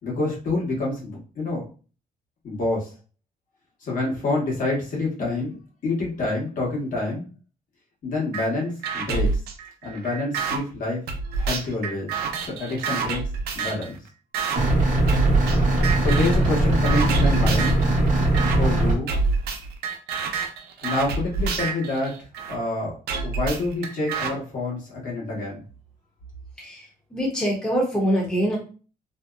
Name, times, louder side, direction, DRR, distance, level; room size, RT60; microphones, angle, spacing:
voice 1, 0.0-1.6 2.4-2.9 3.8-5.5 5.8-7.3 8.0-9.4 9.8-11.0 11.4-12.1 12.5-13.2 13.5-14.0 16.0-17.8 18.6-19.1 20.8-23.0 23.2-25.6, left 2 dB, 60° left, -4 dB, 1.2 m, -27 dB
sound 1, 8.3-8.5 8.8-10.6 11.1-13.9 14.3-14.6 15.1-15.6 15.8-16.4 16.8-17.8 18.3-18.6 19.1-22.6 23.1-24.3, right 4 dB, 85° right, 0.5 m, -27 dB
sound 2, 14.6-19.0, right 1 dB, 55° right, 0.8 m, -20 dB
voice 2, 27.1-28.6, equal, 5° left, -3 dB, 0.8 m, -24 dB
2.7 x 2.0 x 2.4 m, 0.37 s
cardioid pair, 125°, 16 cm